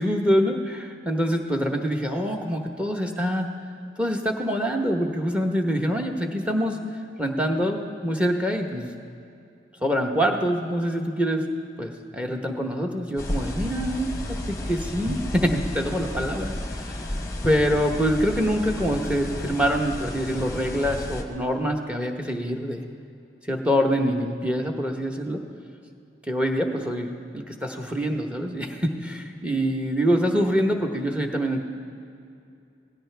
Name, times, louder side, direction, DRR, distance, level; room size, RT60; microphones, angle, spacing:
voice 1, 0.0-3.5 4.0-6.8 7.2-8.9 9.8-11.4 11.8-17.1 17.4-22.8 23.5-25.4 26.3-27.1 27.3-31.6, equal, 5° right, 3 dB, 1.0 m, -25 dB
sound 1, 13.2-21.2, left 1 dB, 15° left, 1.0 m, -32 dB
17.5 x 15.5 x 3.4 m, 2.5 s
head